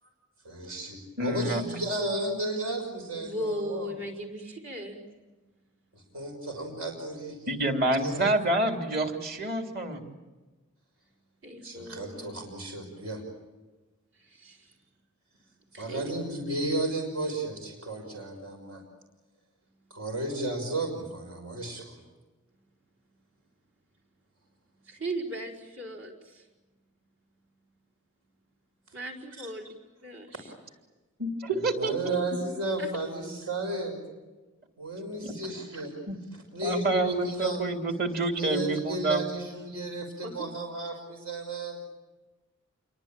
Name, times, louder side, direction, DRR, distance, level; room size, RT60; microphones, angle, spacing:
voice 1, 0.4-3.9 5.9-7.5 8.0-8.2 11.6-13.2 15.8-18.8 19.9-22.0 31.7-34.0 34.8-35.9 36.5-37.6 38.4-41.8, right 2 dB, 85° right, 2 dB, 5.9 m, -33 dB
voice 2, 1.2-1.6 7.5-10.0 31.2-32.2 35.2-35.3 36.1-36.2 36.6-39.2, right 2 dB, 45° right, 4 dB, 3.1 m, -28 dB
voice 3, 3.1-5.0 11.4-12.2 14.2-14.7 15.7-16.2 24.9-26.4 28.9-29.7 30.0-30.5 32.8-32.9 40.2-40.4, equal, 65° right, 0 dB, 5.1 m, -37 dB
28.0 x 23.0 x 9.0 m, 1.2 s
head